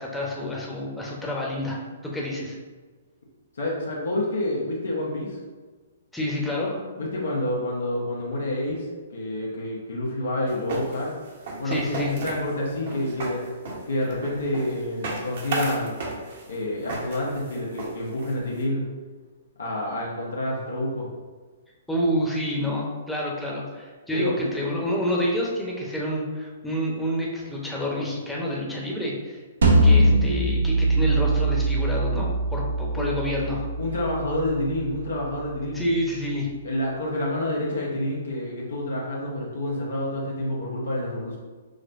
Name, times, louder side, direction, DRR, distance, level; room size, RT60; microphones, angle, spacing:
voice 1, 0.0-1.8 2.1-2.6 6.1-6.8 11.6-12.1 21.9-29.4 29.8-33.7 35.7-36.5, equal, 5° left, -4 dB, 0.8 m, -28 dB
voice 2, 3.6-5.4 7.0-11.2 11.6-13.5 13.9-16.0 16.5-18.8 19.6-21.1 24.1-24.4 32.9-33.4 33.8-35.8 36.6-41.4, left 1 dB, 75° left, -4 dB, 0.9 m, -28 dB
sound 1, 10.5-18.6, right 2 dB, 55° right, 1.0 m, -34 dB
sound 2, 29.6-34.7, right 1 dB, 75° right, 0.7 m, -22 dB
6.2 x 2.1 x 2.6 m, 1.4 s
hypercardioid pair, 130°, 0 cm